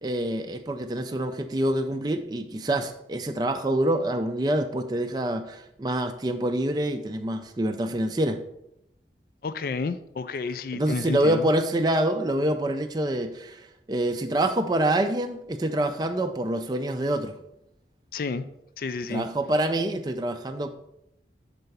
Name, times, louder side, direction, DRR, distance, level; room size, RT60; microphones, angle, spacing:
voice 1, 0.0-8.4 10.7-13.6 13.9-17.3 19.1-20.7, right 1 dB, 25° right, 6 dB, 0.4 m, -26 dB
voice 2, 9.4-11.5 18.1-18.5 18.8-19.3, left 4 dB, 55° left, 12 dB, 0.3 m, -30 dB
6.7 x 4.6 x 5.3 m, 0.82 s
head